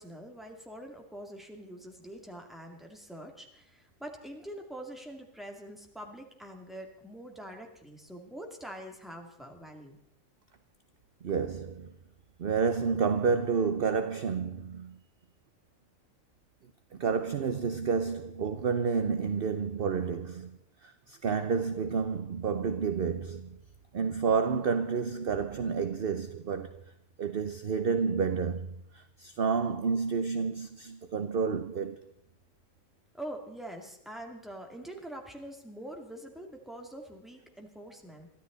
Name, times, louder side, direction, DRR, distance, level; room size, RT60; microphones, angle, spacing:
voice 1, 0.0-10.0 33.1-38.3, right 1 dB, ahead, 2.5 m, -44 dB
voice 2, 11.2-11.9 12.4-15.0 16.9-23.6 23.9-26.8 27.2-32.0, right 5 dB, 50° right, 0.9 m, -30 dB
23.0 x 14.5 x 4.0 m
omnidirectional pair, 1.4 m